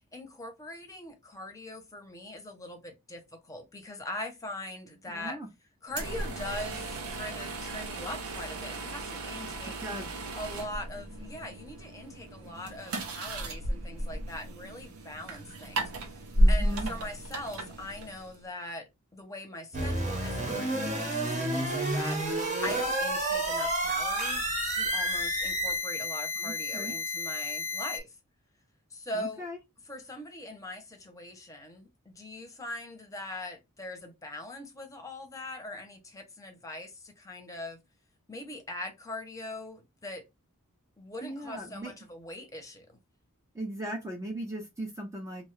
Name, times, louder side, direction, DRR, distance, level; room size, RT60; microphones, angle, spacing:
voice 1, 0.1-5.4 5.8-9.8 10.3-15.9 16.5-28.1 28.9-29.5 29.9-37.8 38.3-40.3 41.0-43.0, left 1 dB, 15° left, 0.7 m, -41 dB
voice 2, 5.1-5.5 9.8-10.1 16.4-16.9 26.4-27.0 29.1-29.6 41.2-41.9 43.5-45.5, right 1 dB, 15° right, 0.5 m, -38 dB
sound 1, 5.9-18.4, right 1 dB, 80° right, 0.7 m, -33 dB
sound 2, 19.7-28.0, equal, 35° right, 0.9 m, -30 dB
2.6 x 2.3 x 3.1 m
head